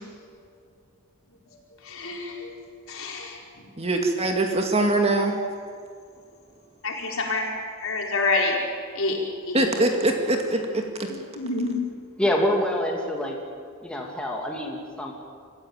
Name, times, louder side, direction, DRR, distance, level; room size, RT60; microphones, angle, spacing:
voice 1, 1.9-2.5 2.9-3.4 6.8-7.4 7.8-8.6 8.9-9.2 9.5-9.6 11.4-11.7, left 3 dB, 70° left, 0 dB, 4.6 m, -27 dB
voice 2, 3.8-5.4 9.5-11.1, right 2 dB, 30° right, 3 dB, 2.2 m, -23 dB
voice 3, 12.2-13.4 13.8-15.1, left 1 dB, 5° left, -1 dB, 2.7 m, -26 dB
25.5 x 15.0 x 9.0 m, 2.1 s
head